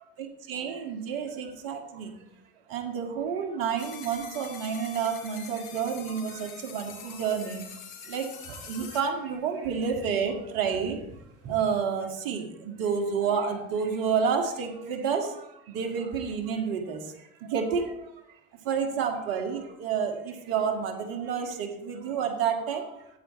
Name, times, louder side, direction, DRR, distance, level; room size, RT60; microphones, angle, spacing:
voice 1, 0.5-2.1 2.7-7.6 8.1-8.2 8.7-11.0 11.5-15.3 15.7-17.0 17.5-17.9 18.7-20.1 20.5-22.8, right 6 dB, 60° right, 4 dB, 2.2 m, -29 dB
sound 1, 3.8-9.0, left 7 dB, 70° left, 2.5 m, -44 dB
15.5 x 8.8 x 3.2 m, 0.80 s
hypercardioid pair, 70°, 41 cm